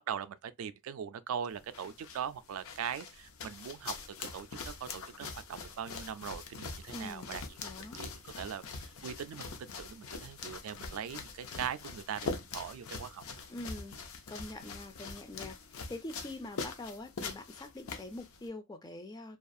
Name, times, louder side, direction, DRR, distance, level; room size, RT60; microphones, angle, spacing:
voice 1, 0.1-7.4 7.9-13.2, right 8 dB, 70° right, 0.3 m, -41 dB
sound 1, 1.5-18.5, left 4 dB, 70° left, 0.5 m, -43 dB
voice 2, 6.9-7.4 7.6-8.0 13.5-14.0 14.3-15.6 15.9-19.4, left 2 dB, 20° left, 0.4 m, -44 dB
2.4 x 2.4 x 2.5 m
head